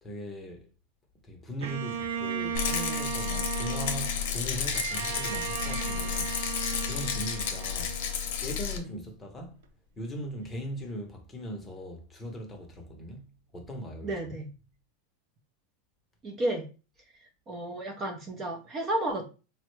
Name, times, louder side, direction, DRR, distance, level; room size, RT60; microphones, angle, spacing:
voice 1, 0.0-0.7 1.2-6.4 6.8-8.2 8.4-9.6 10.0-14.4, equal, 15° left, 0.8 m, -39 dB
Bowed string instrument, 1.6-8.9, right 7 dB, 80° right, 0.4 m, -36 dB
Rattle, 2.5-8.8, left 8 dB, 70° left, 0.7 m, -32 dB
voice 2, 14.0-14.5 16.2-16.6 17.5-19.2, right 1 dB, 25° right, 0.6 m, -32 dB
3.6 x 2.1 x 3.1 m
supercardioid pair, 140°, 0 cm